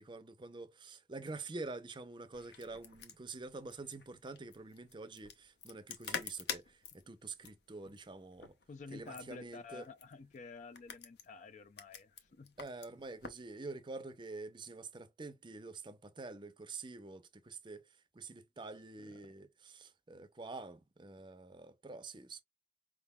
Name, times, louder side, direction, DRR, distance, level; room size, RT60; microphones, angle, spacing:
voice 1, 0.0-8.5 8.9-9.9 12.6-17.8 18.1-22.4, right 3 dB, 25° right, 0.6 m, -47 dB
sound 1, 2.3-13.5, left 6 dB, 60° left, 0.8 m, -48 dB
voice 2, 8.7-12.5 19.0-19.3, left 4 dB, 40° left, 0.4 m, -51 dB
4.9 x 3.6 x 2.2 m
head